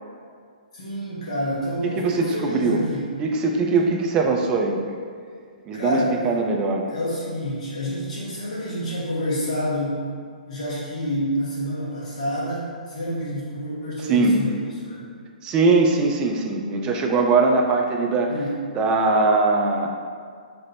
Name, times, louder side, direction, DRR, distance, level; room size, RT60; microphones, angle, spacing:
voice 1, 0.7-3.1 5.7-6.4 6.9-10.1 10.5-15.1 18.3-18.5, equal, 50° left, -8 dB, 1.3 m, -28 dB
voice 2, 2.0-2.8 3.2-5.0 5.7-6.0 6.2-6.8 14.1-14.4 15.4-18.3 18.8-19.9, right 3 dB, 20° right, 1 dB, 0.4 m, -21 dB
3.3 x 2.5 x 4.2 m, 2.1 s
figure-of-eight pair, 120°, 5 cm